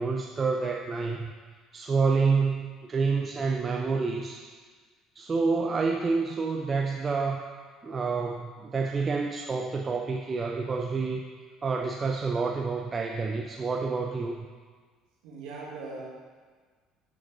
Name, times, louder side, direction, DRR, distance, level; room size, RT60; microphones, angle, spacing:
voice 1, 0.0-1.3 1.7-4.4 5.2-7.4 7.8-11.2 11.6-14.5, right 4 dB, 30° right, 2 dB, 0.6 m, -28 dB
voice 2, 15.2-16.0, right 3 dB, 65° right, -5 dB, 2.1 m, -39 dB
12.5 x 6.2 x 2.5 m, 1.5 s
figure-of-eight pair, 55°, 0 cm